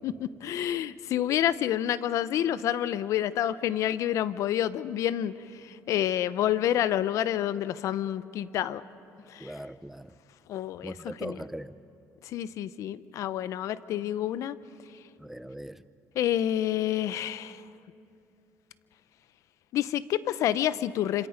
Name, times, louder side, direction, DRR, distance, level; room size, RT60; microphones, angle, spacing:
voice 1, 0.0-5.3 5.6-8.8 9.3-9.5 10.5-11.4 12.3-14.6 16.2-17.6 19.7-21.3, left 11 dB, 70° left, 16 dB, 0.7 m, -28 dB
voice 2, 9.4-10.1 10.8-11.8 15.2-15.8, right 1 dB, 5° right, 13 dB, 0.8 m, -40 dB
27.0 x 26.0 x 5.2 m, 2.7 s
cardioid pair, 95°, 6 cm